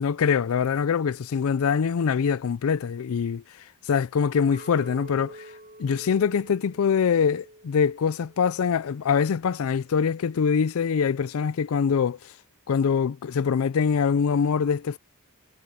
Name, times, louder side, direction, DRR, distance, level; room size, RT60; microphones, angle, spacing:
voice 1, 0.0-3.4 3.9-5.5 5.8-12.3 12.7-15.0, left 6 dB, 70° left, 0.4 m, -24 dB
Chink clink, 4.5-8.9 9.2-9.6, right 1 dB, 40° right, 3.8 m, -47 dB
head